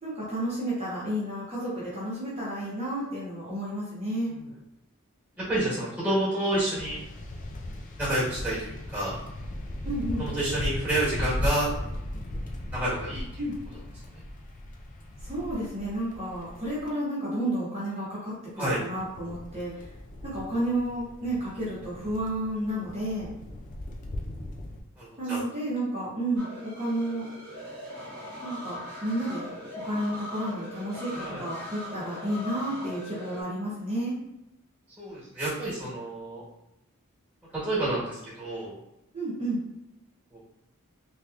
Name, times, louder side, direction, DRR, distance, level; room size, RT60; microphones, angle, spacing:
voice 1, 0.0-4.3 9.8-10.2 13.4-13.5 15.2-19.9 20.2-23.3 25.2-27.3 28.4-29.5 29.8-34.2 39.1-39.6, right 1 dB, 30° right, -8 dB, 0.8 m, -31 dB
voice 2, 5.4-7.0 8.0-9.2 10.2-11.7 12.7-13.2 14.1-14.2 18.6-18.8 25.0-25.4 31.1-31.5 35.0-36.4 37.6-38.8 40.3-40.4, right 1 dB, 5° right, -9 dB, 1.4 m, -29 dB
sound 1, 6.8-16.9 18.6-24.8, left 1 dB, 35° left, 0.4 m, -37 dB
sound 2, 26.4-33.4, equal, 50° right, 0.9 m, -40 dB
3.2 x 2.8 x 2.4 m, 0.90 s
head